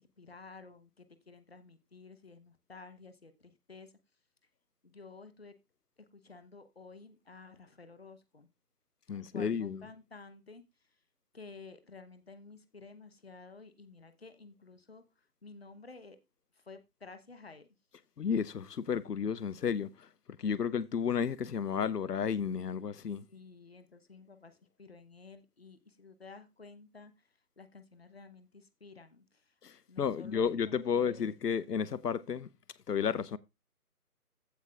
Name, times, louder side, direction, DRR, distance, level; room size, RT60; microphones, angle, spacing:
voice 1, 0.0-3.9 4.8-5.5 6.0-8.5 9.1-11.0 11.3-16.2 16.5-17.8 23.3-29.6 29.9-31.4, left 4 dB, 40° left, 0.9 m, -53 dB
voice 2, 9.1-9.8 18.2-20.1 20.4-23.2 29.6-32.5 32.9-33.4, left 7 dB, 90° left, 0.8 m, -32 dB
15.5 x 5.9 x 2.4 m
figure-of-eight pair, 175°, 46 cm